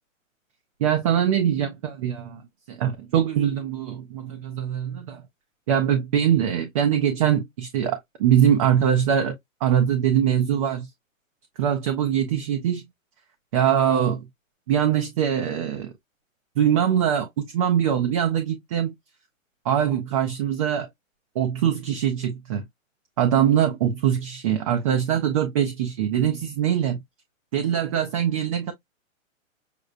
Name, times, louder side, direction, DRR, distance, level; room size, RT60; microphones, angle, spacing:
voice 1, 0.8-2.4 2.7-5.2 5.7-10.9 11.6-12.9 13.5-14.3 14.7-15.9 16.6-18.9 19.6-20.9 21.4-22.6 23.2-27.0 27.5-28.7, right 9 dB, 25° right, 0.5 m, -22 dB
6.5 x 2.2 x 2.4 m
hypercardioid pair, 145°, 41 cm